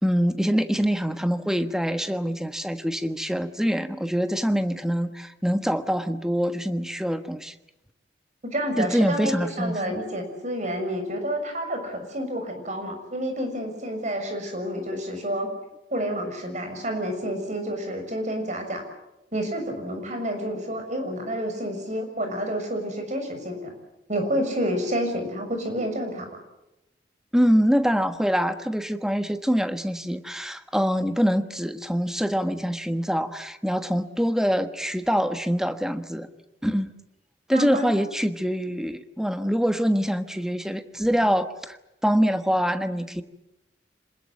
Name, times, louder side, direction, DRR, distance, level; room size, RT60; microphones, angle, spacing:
voice 1, 0.0-7.5 8.8-10.0 27.3-36.3 36.6-36.9 37.5-41.8 42.0-43.2, equal, 5° right, 9 dB, 1.3 m, -24 dB
voice 2, 8.4-15.5 15.9-18.8 19.3-23.8 24.1-26.3 37.5-37.9, equal, 45° right, 5 dB, 6.6 m, -29 dB
26.5 x 20.5 x 9.0 m, 0.91 s
head